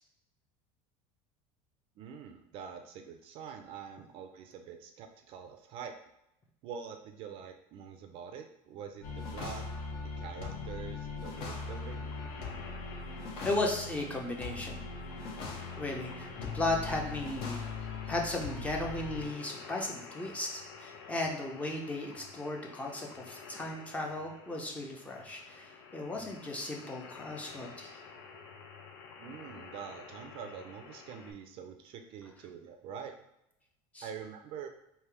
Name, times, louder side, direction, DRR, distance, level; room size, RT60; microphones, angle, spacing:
voice 1, 2.0-5.9 6.6-9.6 10.2-12.1 29.2-33.1 34.0-34.7, right 7 dB, 45° right, 6 dB, 0.4 m, -45 dB
sound 1, 9.0-19.3, left 4 dB, 55° left, 1.0 m, -40 dB
sound 2, 11.3-31.3, left 5 dB, 90° left, 0.7 m, -50 dB
voice 2, 13.4-14.8 15.7-16.3 16.5-17.6 18.1-28.0 33.9-34.1, left 2 dB, 10° left, 0 dB, 0.6 m, -36 dB
3.4 x 2.8 x 4.6 m, 0.83 s
cardioid pair, 155°, 12 cm